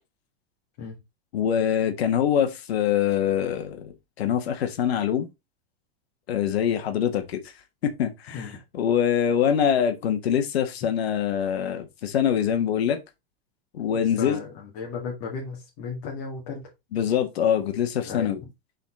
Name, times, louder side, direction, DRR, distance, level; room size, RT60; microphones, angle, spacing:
voice 1, 1.3-3.9 4.2-5.3 6.3-7.4 7.8-13.0 13.7-14.4 16.9-18.4, left 9 dB, 85° left, 1.5 m, -24 dB
voice 2, 13.9-16.6 18.1-18.3, left 5 dB, 35° left, 2.1 m, -35 dB
7.3 x 4.2 x 3.8 m
supercardioid pair, 175°, 30 cm